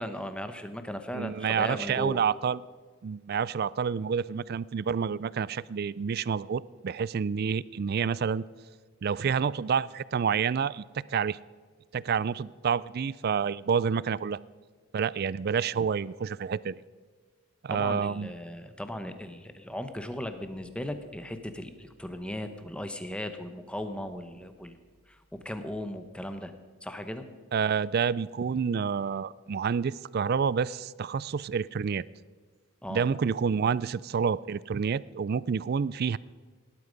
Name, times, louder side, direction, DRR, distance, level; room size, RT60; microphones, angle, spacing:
voice 1, 0.0-2.2 17.7-24.8 25.1-26.5 26.8-27.3 32.8-33.0, left 1 dB, 5° left, 8 dB, 0.9 m, -37 dB
voice 2, 1.1-2.6 3.0-8.4 9.0-11.4 11.9-14.4 14.9-16.8 17.6-18.3 27.5-32.0 32.9-36.2, right 6 dB, 45° right, 21 dB, 0.3 m, -28 dB
18.0 x 11.5 x 5.2 m, 1.5 s
head